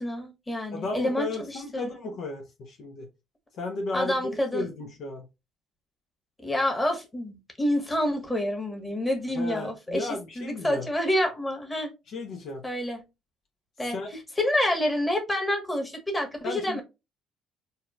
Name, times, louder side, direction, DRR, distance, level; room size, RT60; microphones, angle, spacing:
voice 1, 0.0-1.9 3.9-4.7 6.4-10.1 10.4-11.9 12.6-13.0 13.8-14.0 14.4-16.8, left 1 dB, 15° left, 1.5 m, -28 dB
voice 2, 0.7-3.1 3.5-5.3 9.3-10.9 12.1-12.6 13.8-14.2 16.4-16.8, left 2 dB, 60° left, 0.8 m, -34 dB
4.1 x 2.7 x 2.4 m
hypercardioid pair, 55°, 0 cm